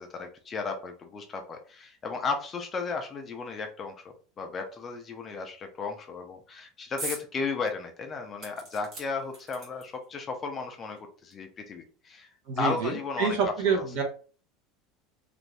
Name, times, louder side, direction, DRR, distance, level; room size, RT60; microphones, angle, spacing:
voice 1, 0.0-12.3 12.6-13.4 13.7-13.8, left 4 dB, 20° left, 4 dB, 0.4 m, -35 dB
sound 1, 7.0-7.3 7.7-7.8 8.4-10.1 10.9-11.0 11.3-11.4, right 1 dB, 35° right, 1.1 m, -40 dB
voice 2, 12.5-14.0, right 5 dB, 55° right, 2 dB, 1.0 m, -27 dB
2.6 x 2.5 x 3.1 m, 0.39 s
cardioid pair, 180°, 0 cm